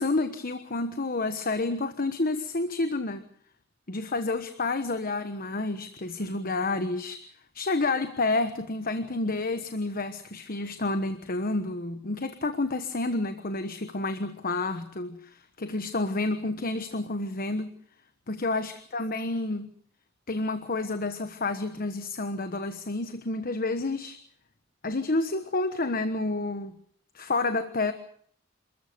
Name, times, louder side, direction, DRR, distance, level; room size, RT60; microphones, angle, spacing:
voice 1, 0.0-3.2 3.9-7.2 7.5-17.8 18.3-19.7 20.3-24.2 24.8-26.7 27.1-27.9, left 2 dB, 45° left, 9 dB, 1.2 m, -29 dB
27.5 x 14.0 x 8.0 m, 0.62 s
head